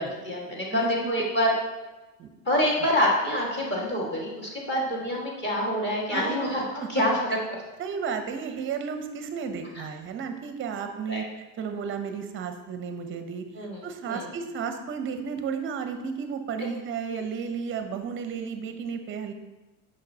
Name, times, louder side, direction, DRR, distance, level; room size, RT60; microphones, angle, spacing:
voice 1, 0.0-1.5 2.4-6.6 6.9-7.1 7.5-7.6 11.1-11.2 13.6-13.8 14.1-14.2, left 1 dB, 25° left, -3 dB, 1.7 m, -26 dB
voice 2, 0.7-1.1 2.2-2.3 2.8-2.9 6.1-6.9 7.8-11.2 11.6-19.3, right 6 dB, 25° right, 7 dB, 0.6 m, -33 dB
6.5 x 5.3 x 2.7 m, 1.1 s
supercardioid pair, 105°, 47 cm